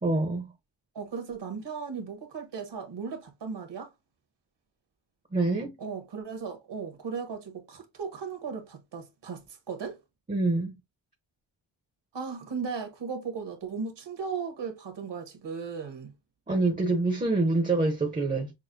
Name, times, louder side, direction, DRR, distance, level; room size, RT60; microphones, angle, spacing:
voice 1, 0.0-0.5 5.3-5.7 10.3-10.8 16.5-18.5, right 2 dB, 20° right, 0.7 m, -26 dB
voice 2, 0.9-3.9 5.8-10.0 12.1-16.1, right 5 dB, 65° right, 1.2 m, -36 dB
6.1 x 2.1 x 2.5 m
wide cardioid pair, 105°, 45 cm